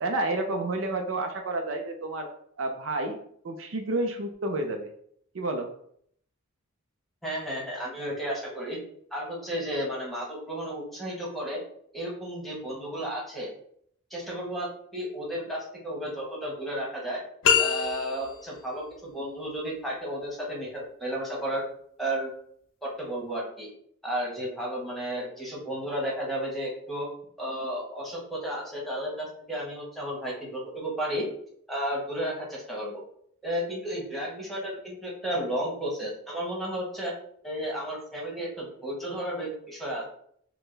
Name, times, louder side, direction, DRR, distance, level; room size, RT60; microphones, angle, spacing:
voice 1, 0.0-2.3 2.6-3.2 3.4-4.9 5.3-5.7, right 2 dB, 70° right, 5 dB, 0.5 m, -30 dB
voice 2, 7.2-8.8 9.1-11.6 11.9-13.5 14.1-17.2 17.6-21.6 22.0-22.3 22.8-23.7 24.0-27.1 27.4-31.2 31.7-33.0 33.4-37.1 37.4-40.0, equal, ahead, -4 dB, 1.2 m, -33 dB
sound 1, 17.4-18.5, left 7 dB, 90° left, 0.7 m, -24 dB
6.0 x 2.1 x 3.3 m, 0.66 s
head